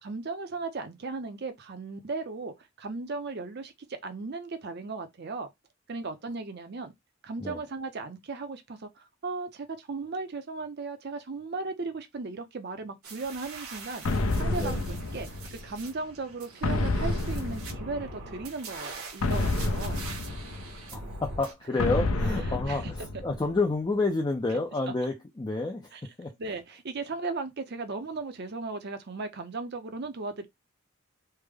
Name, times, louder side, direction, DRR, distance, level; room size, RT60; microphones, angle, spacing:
voice 1, 0.0-5.5 5.9-6.9 7.2-14.1 14.3-20.0 22.5-22.9 25.9-26.0 26.4-30.5, right 3 dB, 50° right, 0.6 m, -36 dB
sound 1, 13.0-21.5, right 3 dB, 70° right, 1.0 m, -44 dB
sound 2, 14.1-15.8 16.6-18.3 19.2-21.0 21.8-23.6, left 2 dB, 70° left, 0.6 m, -29 dB
voice 2, 20.9-26.3, left 3 dB, 20° left, 0.4 m, -29 dB
3.3 x 2.1 x 3.4 m
head